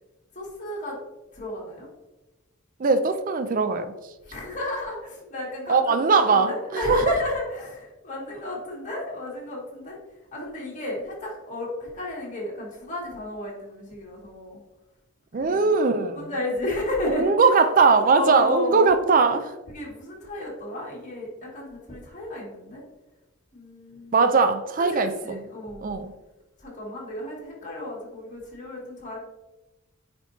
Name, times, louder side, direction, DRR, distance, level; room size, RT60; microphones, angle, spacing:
voice 1, 0.3-1.0 1.3-1.9 4.2-10.0 10.3-14.6 15.4-15.9 16.1-17.3 18.1-18.9 19.7-22.8 23.5-24.2 24.9-25.9 26.6-29.2, left 1 dB, 35° left, -4 dB, 2.1 m, -32 dB
voice 2, 2.8-3.9 5.7-7.1 15.3-16.3 17.1-19.5 24.1-25.4 25.8-26.1, right 4 dB, 40° right, 9 dB, 0.4 m, -20 dB
9.4 x 4.5 x 2.7 m, 1.0 s
head